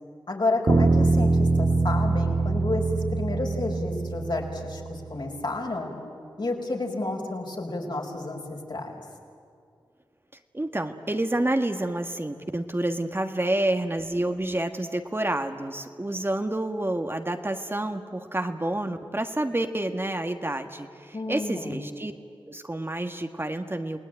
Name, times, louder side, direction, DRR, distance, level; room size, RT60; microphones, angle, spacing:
voice 1, 0.3-5.9 6.4-8.9 21.1-21.9, left 2 dB, 55° left, 0 dB, 5.3 m, -30 dB
Bass guitar, 0.7-5.1, right 3 dB, 70° right, 2.2 m, -23 dB
voice 2, 10.5-22.1 22.5-24.0, right 1 dB, 25° right, 6 dB, 1.7 m, -29 dB
28.5 x 19.0 x 9.3 m, 2.4 s
cardioid pair, 45°, 9 cm